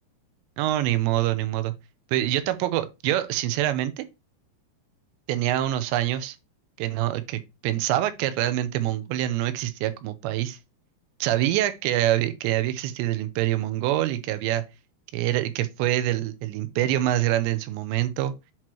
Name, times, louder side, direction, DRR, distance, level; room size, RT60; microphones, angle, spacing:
voice 1, 0.6-1.7 2.1-4.1 5.3-6.4 6.8-10.6 11.2-14.6 15.1-18.3, right 13 dB, 90° right, 2.9 m, -25 dB
8.0 x 3.0 x 4.4 m
omnidirectional pair, 5.1 m